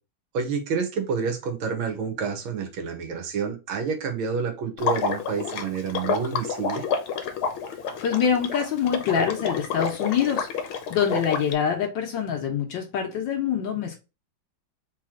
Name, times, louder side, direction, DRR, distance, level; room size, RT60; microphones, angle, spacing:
voice 1, 0.3-6.8, right 5 dB, 80° right, 1.9 m, -29 dB
Water / Liquid, 4.8-11.5, left 6 dB, 90° left, 1.7 m, -29 dB
voice 2, 8.0-10.5 10.9-14.0, left 7 dB, 70° left, 1.5 m, -25 dB
4.2 x 3.0 x 3.6 m
omnidirectional pair, 2.2 m